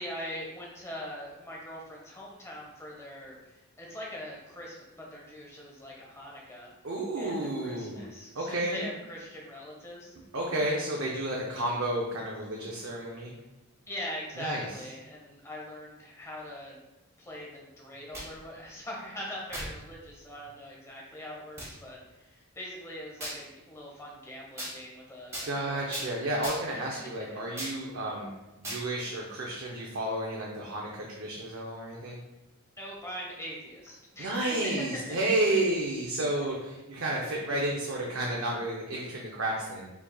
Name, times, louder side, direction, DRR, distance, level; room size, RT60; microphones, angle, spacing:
voice 1, 0.0-6.7 7.1-10.1 13.9-16.8 17.2-25.9 26.7-26.8 32.8-34.8 35.5-35.6, left 1 dB, 15° left, -3 dB, 0.9 m, -42 dB
voice 2, 6.8-8.1 8.3-8.8 10.3-13.3 14.4-14.6 25.4-28.3 28.6-32.2 34.2-39.9, right 1 dB, 60° right, -2 dB, 0.6 m, -31 dB
sound 1, 17.9-18.4 19.5-19.8 20.4-20.5 21.6-21.7 23.2-23.4 24.6-24.7 25.3-25.5 25.9-26.1 26.4-26.8 27.6-27.8 28.6-28.8, equal, 15° right, 1.3 m, -37 dB
4.6 x 4.1 x 2.3 m, 1.0 s
head